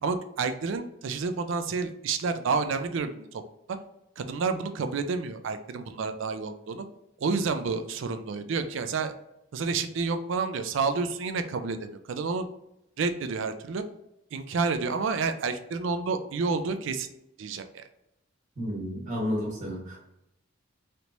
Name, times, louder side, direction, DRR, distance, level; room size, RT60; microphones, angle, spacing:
voice 1, 0.0-3.4 3.7-3.8 4.2-6.9 7.2-9.1 9.5-12.5 13.0-13.8 14.3-17.1 17.4-17.8, right 4 dB, 65° right, 9 dB, 0.4 m, -29 dB
voice 2, 18.6-20.0, equal, 35° right, -3 dB, 1.1 m, -31 dB
3.2 x 2.9 x 2.6 m, 0.83 s
head